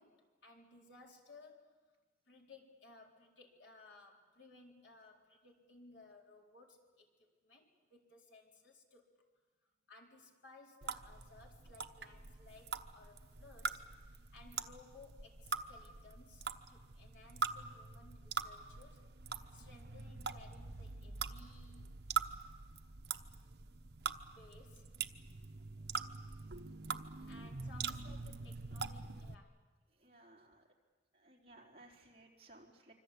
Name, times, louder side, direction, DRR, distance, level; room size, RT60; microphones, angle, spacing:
voice 1, 0.0-1.8 2.3-9.1 9.9-19.0 19.5-21.9 24.4-24.9 27.2-29.6, left 3 dB, 90° left, 0 dB, 4.3 m, -60 dB
sound 1, 10.8-29.3, right 5 dB, 70° right, 1.1 m, -43 dB
voice 2, 25.6-26.0 27.2-27.9 29.9-30.7 31.1-32.9, right 2 dB, 35° right, -1 dB, 4.1 m, -62 dB
26.0 x 25.5 x 8.4 m, 1.3 s
head